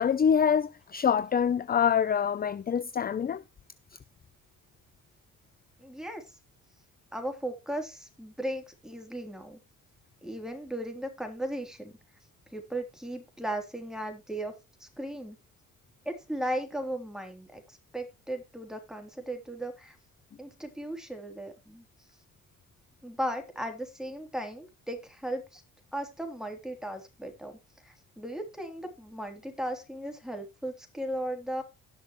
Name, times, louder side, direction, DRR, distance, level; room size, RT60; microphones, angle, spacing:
voice 1, 0.0-3.4, left 7 dB, 30° left, 0.6 m, -25 dB
voice 2, 5.8-6.2 7.1-9.6 10.2-11.9 12.5-14.5 14.8-15.4 16.0-19.9 20.4-21.8 23.0-25.6 25.9-27.6 27.8-31.6, right 1 dB, ahead, 3.3 m, -36 dB
18.0 x 6.4 x 3.1 m
cardioid pair, 90°, 30 cm